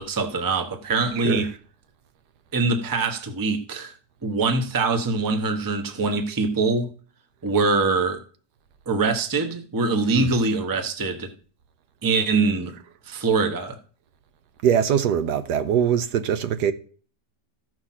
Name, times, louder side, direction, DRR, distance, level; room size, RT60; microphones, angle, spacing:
voice 1, 0.0-1.5 2.5-3.9 4.2-6.9 7.4-8.2 8.9-11.3 12.0-12.7 13.1-13.8, right 3 dB, 15° right, 0.7 m, -23 dB
voice 2, 1.2-1.5 10.1-10.3 14.6-16.7, right 8 dB, 75° right, 1.3 m, -22 dB
14.5 x 4.8 x 5.8 m
omnidirectional pair, 1.8 m